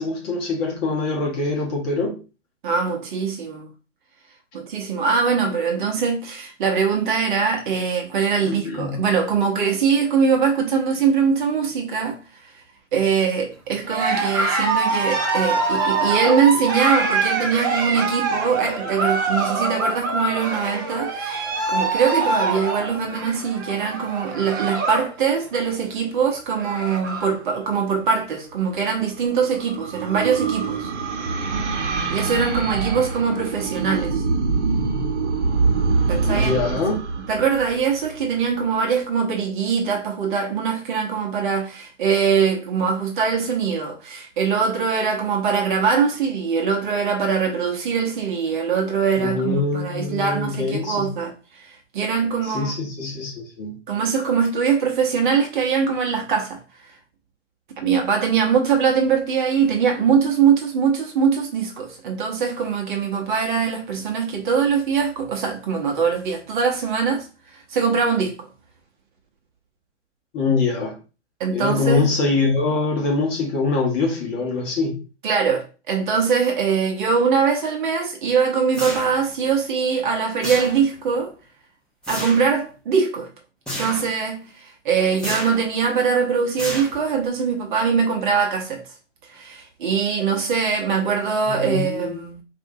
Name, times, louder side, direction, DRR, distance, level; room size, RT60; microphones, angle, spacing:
voice 1, 0.0-2.2 8.4-9.0 36.2-37.0 49.2-51.1 52.4-53.8 70.3-71.0 71.5-75.0 91.5-92.2, left 3 dB, 25° left, 1.2 m, -24 dB
voice 2, 2.6-3.7 4.5-12.2 12.4-12.6 12.9-30.9 32.1-34.2 36.1-36.5 37.3-52.7 53.9-56.6 57.8-68.5 71.4-72.0 75.2-81.3 82.1-83.3 83.8-88.8 89.3-92.4, right 6 dB, 40° right, 0.9 m, -22 dB
Cheering, 13.8-25.1 25.4-25.8 26.2-26.3 26.5-27.4, right 3 dB, 20° right, 0.3 m, -24 dB
sound 1, 28.8-38.4, right 4 dB, 70° right, 1.1 m, -24 dB
sound 2, 78.7-79.4 80.4-81.1 82.0-82.5 83.7-84.2 85.2-85.7 86.6-87.2, equal, ahead, 0.7 m, -31 dB
4.5 x 2.6 x 2.7 m
hypercardioid pair, 130°, 37 cm